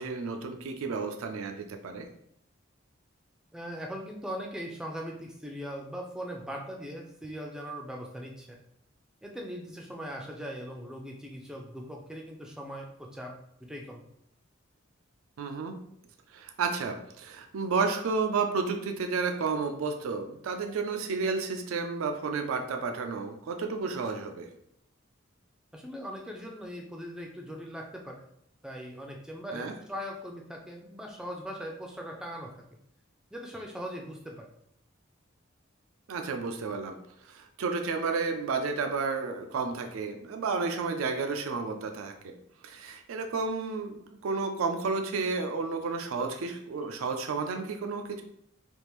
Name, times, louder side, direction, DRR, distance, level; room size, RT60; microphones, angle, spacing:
voice 1, 0.0-2.1 15.4-15.8 16.3-24.5 29.5-29.7 36.1-37.0 37.2-42.3 42.6-48.2, right 4 dB, 80° right, 5 dB, 0.4 m, -31 dB
voice 2, 3.5-8.6 9.2-13.4 13.6-14.0 25.7-28.2 28.6-32.6 33.3-34.5, equal, 5° right, 0 dB, 0.3 m, -40 dB
3.5 x 2.4 x 3.0 m, 0.73 s
head